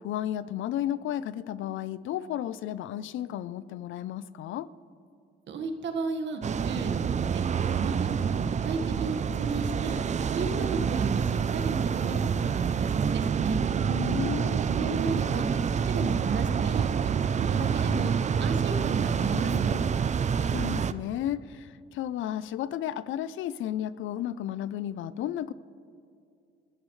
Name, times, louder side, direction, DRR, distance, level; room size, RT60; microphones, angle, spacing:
voice 1, 0.0-4.7 13.9-14.6 20.3-25.5, left 11 dB, 80° left, 0.5 m, -33 dB
voice 2, 5.5-9.9 10.3-13.6 14.6-15.5 15.9-19.8, right 4 dB, 65° right, 1.6 m, -34 dB
sound 1, 6.4-20.9, right 7 dB, 35° right, 0.5 m, -27 dB
28.5 x 13.5 x 3.2 m
cardioid pair, 90°, 20 cm